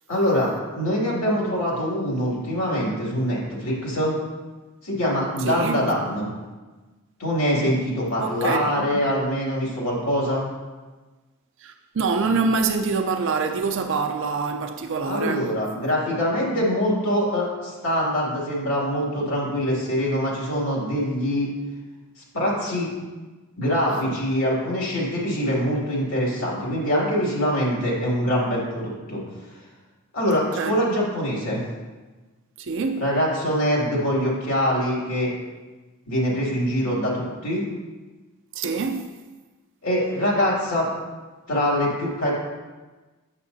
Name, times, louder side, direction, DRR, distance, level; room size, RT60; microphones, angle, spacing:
voice 1, 0.1-4.1 4.8-6.3 7.2-10.4 15.1-21.5 22.3-22.9 23.6-29.2 30.1-31.6 33.0-35.3 36.1-37.6 39.8-40.9 41.5-42.3, equal, 75° left, 2.3 m, -24 dB
voice 2, 5.4-5.8 8.2-9.0 11.6-15.5 30.3-30.7 32.6-33.0 38.5-39.1, right 4 dB, 55° right, 0.4 m, -25 dB
8.8 x 6.3 x 2.7 m
head